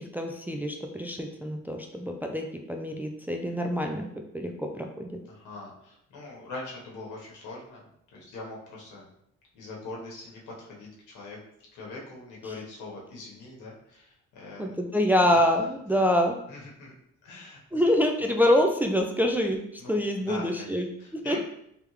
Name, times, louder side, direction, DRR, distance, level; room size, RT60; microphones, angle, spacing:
voice 1, 0.0-5.1 14.6-16.4 17.7-21.4, left 1 dB, 5° right, 3 dB, 0.4 m, -26 dB
voice 2, 5.3-7.9 8.1-9.1 9.5-11.4 11.7-14.7 15.3-15.4 16.5-16.9 17.2-17.8 19.8-21.4, left 2 dB, 85° left, -3 dB, 1.4 m, -42 dB
3.4 x 3.3 x 3.2 m, 0.75 s
cardioid pair, 90°, 30 cm